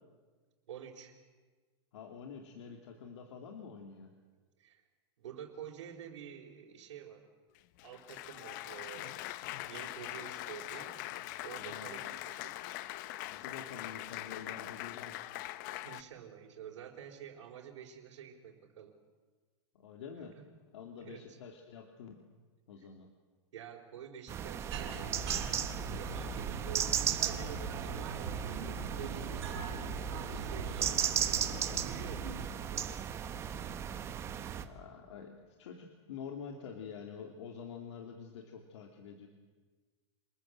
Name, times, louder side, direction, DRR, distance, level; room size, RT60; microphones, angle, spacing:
voice 1, 0.7-1.2 4.6-4.8 5.2-7.3 7.8-9.3 9.6-11.0 11.4-12.6 15.8-18.9 20.3-20.5 21.0-21.4 23.5-25.3 25.9-33.1, right 8 dB, 90° right, -4 dB, 4.7 m, -49 dB
voice 2, 1.9-4.1 11.5-12.0 13.2-15.4 19.7-20.4 20.7-22.2 22.7-23.1 34.6-39.3, left 6 dB, 75° left, 3 dB, 3.0 m, -47 dB
Applause, 7.6-16.0, left 16 dB, 40° left, 0.7 m, -42 dB
sound 1, 24.3-34.6, right 8 dB, 15° right, 1.1 m, -36 dB
sound 2, 24.7-32.5, right 3 dB, 55° right, 6.1 m, -41 dB
27.0 x 21.0 x 7.9 m, 1.4 s
supercardioid pair, 165°, 15 cm